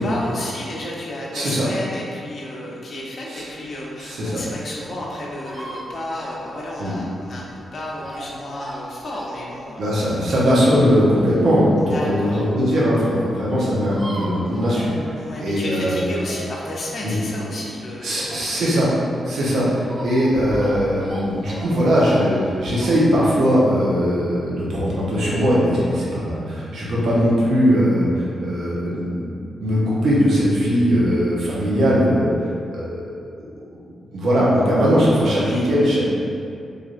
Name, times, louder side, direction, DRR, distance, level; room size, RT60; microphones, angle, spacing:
voice 1, 0.0-9.8 11.8-12.4 15.1-18.6 19.4-19.6 35.3-35.7, left 1 dB, 55° left, -4 dB, 0.6 m, -32 dB
voice 2, 1.3-1.7 3.3-3.4 4.0-4.4 6.8-6.9 9.8-16.0 17.0-17.2 18.0-18.9 19.2-29.2 29.5-32.3 32.7-33.1 34.1-36.1, equal, 75° right, -7 dB, 0.8 m, -19 dB
sound 1, 3.7-12.3 12.7-12.8 13.0-13.1 13.3-13.4 13.6-15.5 15.8-18.8 19.1-22.9, right 1 dB, 35° right, 0.5 m, -37 dB
3.3 x 2.5 x 2.5 m, 2.5 s
cardioid pair, 70°, 0 cm